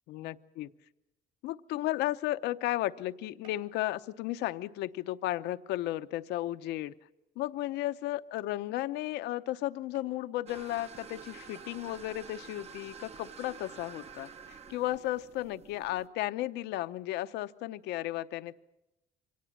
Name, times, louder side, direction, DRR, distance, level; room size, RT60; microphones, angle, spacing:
voice 1, 0.1-0.7 1.4-6.9 7.4-18.5, left 15 dB, 85° left, 12 dB, 0.7 m, -34 dB
sound 1, 3.4-3.8 4.2-4.6 5.2-5.3 5.9-6.1 6.8-6.9 7.4-7.5 8.0-8.1 8.4-8.6 9.9-10.4 11.2-11.3 11.5-11.8, right 5 dB, 55° right, 7.5 m, -61 dB
sound 2, 10.5-16.1, right 6 dB, 40° right, 1.0 m, -49 dB
24.5 x 18.0 x 7.3 m, 0.89 s
cardioid pair, 110°, 17 cm